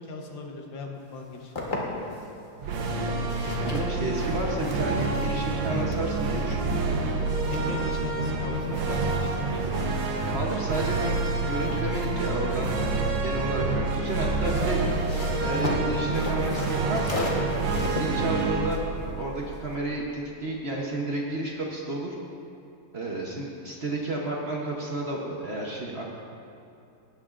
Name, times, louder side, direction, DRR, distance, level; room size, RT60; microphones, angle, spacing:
voice 1, 0.0-2.3 3.7-4.1 7.3-9.9, left 3 dB, 65° left, 1 dB, 1.7 m, -40 dB
sound 1, 1.1-2.3 2.8-8.3 8.5-13.2 14.2-19.7, left 1 dB, 30° left, 1.0 m, -38 dB
sound 2, 2.6-20.0, right 3 dB, 75° right, 1.8 m, -28 dB
voice 2, 3.6-6.8 10.3-14.8 15.4-18.8 19.2-22.2 22.9-26.1, right 2 dB, 60° right, -2 dB, 0.6 m, -31 dB
17.5 x 9.4 x 2.5 m, 2.7 s
omnidirectional pair, 2.3 m